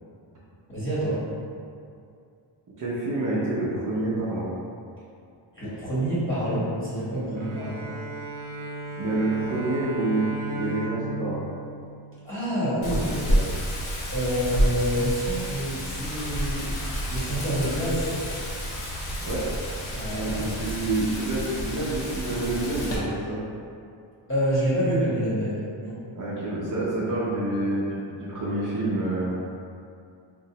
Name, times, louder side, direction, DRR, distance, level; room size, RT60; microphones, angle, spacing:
voice 1, 0.7-1.2 5.5-7.8 12.2-13.3 14.1-16.7 17.1-18.1 19.9-20.6 24.3-25.9, equal, 25° left, -11 dB, 1.0 m, -27 dB
voice 2, 2.8-4.5 7.3-7.4 8.9-10.2 10.5-11.4 13.3-13.4 19.2-19.4 20.1-23.4 26.1-29.3, right 2 dB, 45° right, -8 dB, 0.5 m, -28 dB
Bowed string instrument, 7.4-12.8, right 2 dB, 90° right, 0.5 m, -36 dB
Wind, 12.8-23.0, equal, 75° left, 0.8 m, -29 dB
4.2 x 2.0 x 2.7 m, 2.4 s
wide cardioid pair, 175°, 48 cm